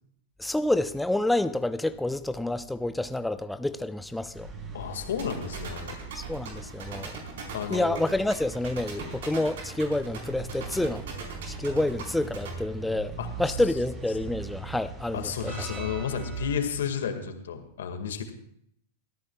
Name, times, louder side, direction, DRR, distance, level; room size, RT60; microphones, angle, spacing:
voice 1, 0.4-4.5 6.1-7.2 7.7-11.0 11.5-13.1 13.4-15.5, left 1 dB, 5° left, 0.6 m, -28 dB
sound 1, 4.3-16.7, right 3 dB, 30° right, 5.4 m, -40 dB
voice 2, 4.7-6.0 7.5-8.0 13.2-13.6 15.1-18.3, left 7 dB, 75° left, 1.8 m, -32 dB
sound 2, 5.2-12.5, right 6 dB, 70° right, 4.2 m, -40 dB
22.5 x 14.0 x 2.3 m
hypercardioid pair, 105°, 0 cm